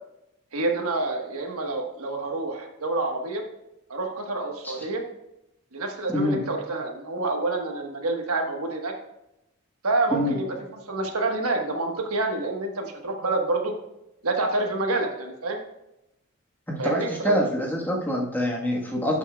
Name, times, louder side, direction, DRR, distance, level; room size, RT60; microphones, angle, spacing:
voice 1, 0.5-3.4 3.9-5.0 5.7-8.9 9.8-10.4 10.7-13.7 14.2-15.6 16.8-17.4, right 2 dB, 80° right, 3 dB, 1.3 m, -27 dB
voice 2, 16.7-19.2, left 1 dB, 10° left, -2 dB, 1.3 m, -26 dB
11.5 x 7.2 x 2.3 m, 0.85 s
head